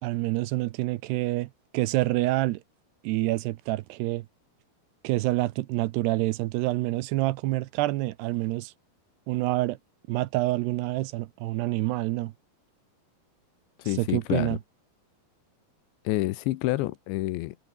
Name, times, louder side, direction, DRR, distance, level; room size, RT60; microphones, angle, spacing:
voice 1, 0.0-2.6 3.0-4.3 5.0-8.7 9.3-9.8 10.1-12.3 14.0-14.6, right 18 dB, 80° right, 2.8 m, -27 dB
voice 2, 13.8-14.6 16.0-17.6, left 17 dB, 90° left, 3.3 m, -28 dB
omnidirectional pair, 5.0 m